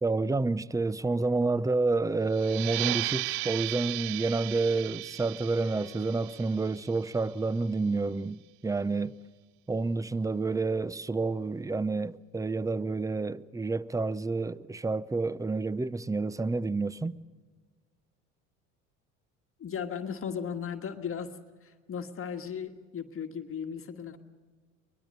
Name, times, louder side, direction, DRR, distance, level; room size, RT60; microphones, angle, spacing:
voice 1, 0.0-9.2 9.7-17.2, right 3 dB, 10° right, 0.6 m, -29 dB
sound 1, 2.3-7.6, right 21 dB, 70° right, 0.6 m, -36 dB
sound 2, 5.6-7.9, left 3 dB, 85° right, 6.2 m, -57 dB
voice 2, 19.6-21.3 21.6-24.2, left 7 dB, 35° left, 1.6 m, -36 dB
24.0 x 20.5 x 6.6 m
hypercardioid pair, 70°, 37 cm